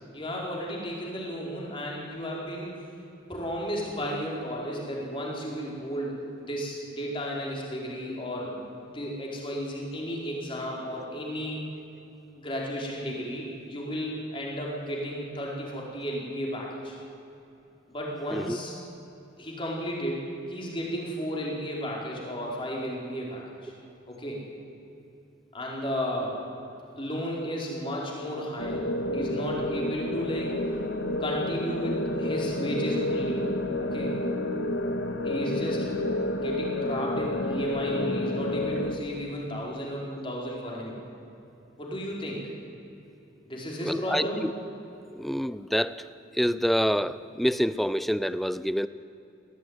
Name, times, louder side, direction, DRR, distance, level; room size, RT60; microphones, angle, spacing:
voice 1, 0.1-2.7 3.3-8.6 8.9-11.6 12.3-17.0 17.9-18.7 19.4-23.7 24.1-24.4 25.5-26.4 27.0-28.9 29.1-30.6 31.2-33.4 33.8-34.1 35.2-36.0 36.3-40.9 41.8-42.4 43.5-44.4, equal, 25° left, -3 dB, 4.6 m, -33 dB
sound 1, 28.6-39.0, left 1 dB, 65° left, 1.9 m, -29 dB
voice 2, 43.8-44.5 45.1-46.0 46.3-48.9, equal, ahead, 15 dB, 0.4 m, -27 dB
20.5 x 16.5 x 9.6 m, 2.9 s
head